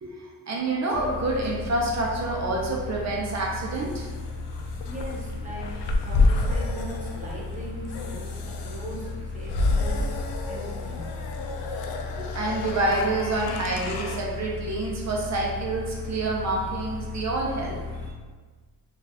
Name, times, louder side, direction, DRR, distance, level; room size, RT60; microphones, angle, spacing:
voice 1, 0.5-4.1 12.2-17.8, right 2 dB, 40° right, -2 dB, 0.6 m, -27 dB
sound 1, 0.9-18.1, left 3 dB, 30° left, 0.4 m, -36 dB
sound 2, 3.1-14.2, left 3 dB, 85° left, 0.5 m, -29 dB
voice 2, 4.8-5.7 6.0-10.1 10.4-11.2, right 1 dB, 20° right, -7 dB, 1.0 m, -39 dB
3.9 x 2.4 x 2.8 m, 1.4 s
wide cardioid pair, 155°, 41 cm